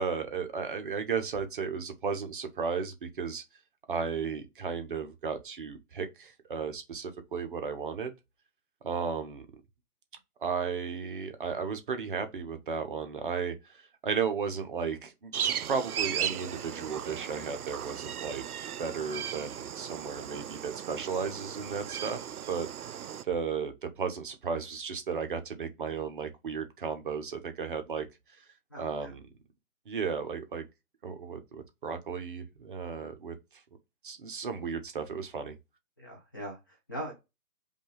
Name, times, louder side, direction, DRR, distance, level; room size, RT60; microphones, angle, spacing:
voice 1, 0.0-3.4 3.9-8.1 8.8-9.5 10.4-18.4 18.8-22.2 22.5-23.0 23.2-28.1 28.7-29.2 29.9-30.6 31.0-33.3 34.0-35.5, right 6 dB, 35° right, 0.7 m, -34 dB
sound 1, 15.3-23.2, right 9 dB, 75° right, 0.5 m, -36 dB
voice 2, 28.7-29.1 36.0-37.1, right 1 dB, 15° left, 0.5 m, -41 dB
5.2 x 2.4 x 3.3 m
figure-of-eight pair, 140°, 45 cm